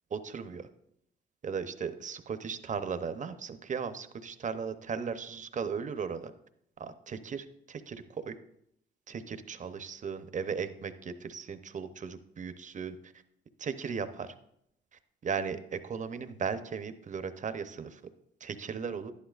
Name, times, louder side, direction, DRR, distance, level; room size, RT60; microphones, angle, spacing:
voice 1, 0.1-0.7 1.4-6.3 6.8-8.3 9.1-13.0 13.6-14.3 15.2-18.0 18.4-19.1, right 6 dB, 40° right, 11 dB, 0.7 m, -36 dB
11.0 x 10.5 x 2.4 m, 0.75 s
cardioid pair, 90°, 20 cm